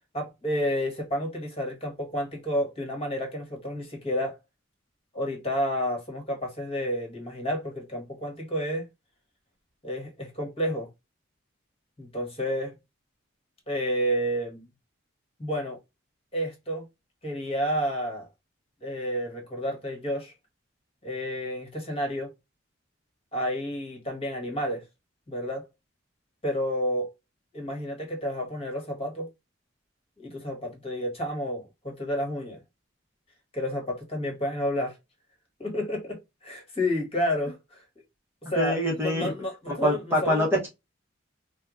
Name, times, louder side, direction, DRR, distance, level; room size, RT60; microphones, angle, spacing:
voice 1, 0.1-4.3 5.1-8.9 9.8-10.9 12.0-12.7 13.7-14.6 15.4-15.8 16.3-16.8 17.2-18.3 18.8-20.3 21.0-22.3 23.3-24.8 25.3-25.6 26.4-27.1 27.5-29.3 30.2-32.6 33.5-35.0 35.6-37.8 38.5-40.5, equal, 30° left, 1.3 m, -30 dB
voice 2, 38.6-39.3 39.7-40.7, equal, 10° right, 0.9 m, -25 dB
4.4 x 2.3 x 2.4 m
head